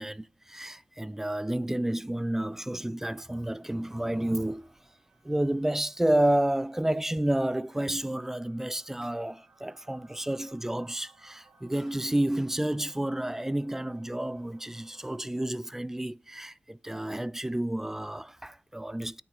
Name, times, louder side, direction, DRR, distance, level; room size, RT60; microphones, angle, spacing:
voice 1, 0.0-4.7 5.2-19.2, right 1 dB, 10° right, 0.4 m, -30 dB
sound 1, 3.3-15.2, right 3 dB, 85° right, 5.9 m, -62 dB
9.4 x 8.3 x 4.6 m
wide cardioid pair, 95°, 3 cm